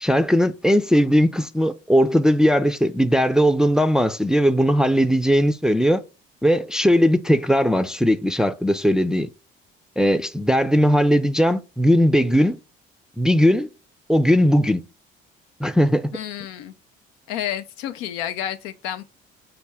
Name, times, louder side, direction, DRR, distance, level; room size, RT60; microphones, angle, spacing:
voice 1, 0.0-6.0 6.4-9.3 10.0-12.6 13.2-13.7 14.1-14.8 15.6-16.1, equal, ahead, 0.4 m, -18 dB
voice 2, 16.1-16.7 17.3-19.0, left 11 dB, 80° left, 0.5 m, -30 dB
5.8 x 2.2 x 3.4 m
hypercardioid pair, 60°, 29 cm